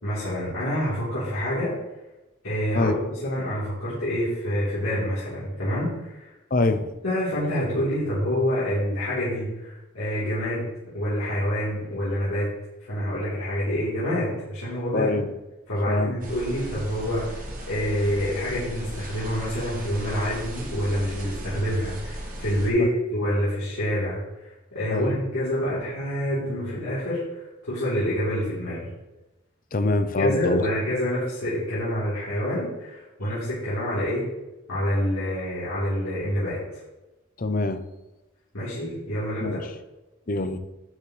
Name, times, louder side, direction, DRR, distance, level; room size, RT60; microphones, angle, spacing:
voice 1, 0.0-1.7 2.4-2.9 3.2-6.3 7.0-10.7 10.9-12.5 12.9-15.1 15.7-24.2 24.7-28.9 30.2-34.2 34.7-36.6 38.5-39.6, equal, 80° left, -12 dB, 3.7 m, -27 dB
voice 2, 6.5-6.9 14.9-15.3 15.9-16.2 24.9-25.2 29.7-30.6 37.4-37.8 39.4-39.6 40.3-40.6, left 2 dB, 40° left, 10 dB, 0.7 m, -24 dB
sound 1, 16.2-22.7, right 1 dB, 40° right, 1.8 m, -36 dB
11.5 x 7.3 x 3.3 m, 1.0 s
head